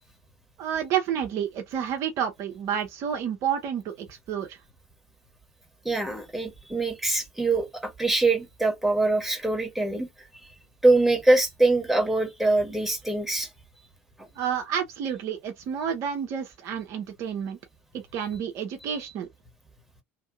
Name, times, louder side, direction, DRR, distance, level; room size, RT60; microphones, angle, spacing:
voice 1, 0.6-4.6 14.4-17.6 17.9-19.3, right 8 dB, 45° right, 0.7 m, -30 dB
voice 2, 5.8-10.1 10.8-13.5 14.2-14.3, right 2 dB, 5° right, 1.2 m, -23 dB
2.9 x 2.7 x 2.5 m
figure-of-eight pair, 65°, 7 cm